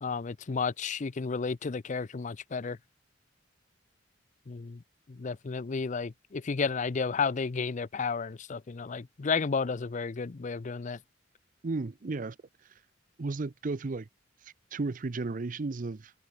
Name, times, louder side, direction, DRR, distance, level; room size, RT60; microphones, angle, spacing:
voice 1, 0.0-2.8 4.5-4.8 5.1-11.0, left 5 dB, 40° left, 0.5 m, -32 dB
voice 2, 11.6-12.4 13.2-14.1 14.4-16.1, right 3 dB, 45° right, 0.6 m, -34 dB
head